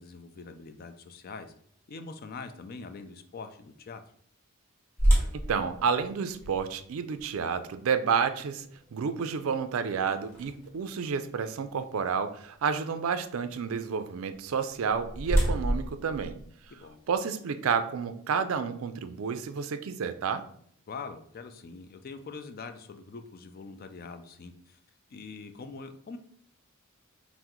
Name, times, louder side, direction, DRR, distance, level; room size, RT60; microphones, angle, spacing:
voice 1, 0.0-1.5 1.9-4.0 16.7-17.0 20.9-24.8 25.1-26.2, left 4 dB, 45° left, 8 dB, 0.4 m, -43 dB
sound 1, 5.0-10.9 11.5-11.6 12.2-12.4 14.5-17.1, equal, 15° left, 1.3 m, -30 dB
voice 2, 5.3-8.6 8.9-16.4 17.1-20.5, right 6 dB, 75° right, 10 dB, 0.4 m, -30 dB
5.7 x 2.1 x 3.0 m, 0.63 s
head